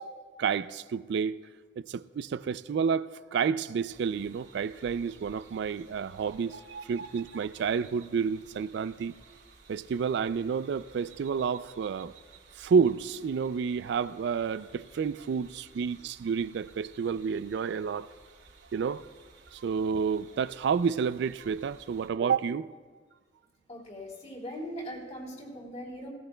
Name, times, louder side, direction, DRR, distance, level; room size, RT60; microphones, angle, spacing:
voice 1, 0.0-1.4 1.8-9.1 9.7-12.1 12.6-18.1 18.7-19.1 19.5-22.7, right 6 dB, 65° right, 0.3 m, -30 dB
sound 1, 3.9-22.1, right 4 dB, 85° right, 3.2 m, -56 dB
voice 2, 23.7-26.1, equal, 40° left, 3.1 m, -40 dB
17.0 x 16.5 x 2.2 m
head